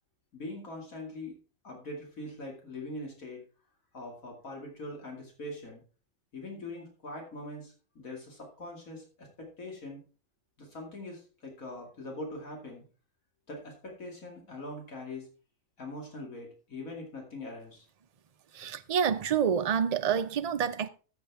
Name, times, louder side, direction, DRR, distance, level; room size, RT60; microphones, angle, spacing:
voice 1, 0.3-1.4 1.6-3.4 3.9-5.8 6.3-10.0 10.6-12.8 13.5-15.3 15.8-17.9, left 2 dB, 85° left, 2.8 m, -42 dB
voice 2, 18.5-20.9, right 7 dB, 50° right, 0.5 m, -28 dB
14.0 x 7.3 x 3.5 m
omnidirectional pair, 1.4 m